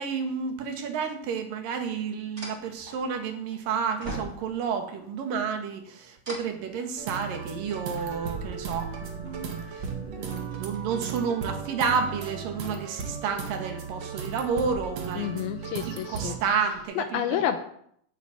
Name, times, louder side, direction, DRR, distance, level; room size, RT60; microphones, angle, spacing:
voice 1, 0.0-15.4 15.8-17.5, right 6 dB, 70° right, 5 dB, 3.4 m, -31 dB
sound 1, 1.3-1.4 2.4-3.6 4.0-4.8 6.2-11.0 11.5-11.7 12.1-12.9 13.5-15.3 15.5-15.9 16.3-16.8, right 2 dB, 20° right, 3.8 m, -43 dB
sound 2, 7.0-16.4, right 6 dB, 50° right, 2.7 m, -36 dB
voice 2, 15.2-16.4 17.0-17.6, left 10 dB, 90° left, 6 dB, 2.7 m, -29 dB
12.5 x 8.2 x 9.1 m, 0.69 s
omnidirectional pair, 4.3 m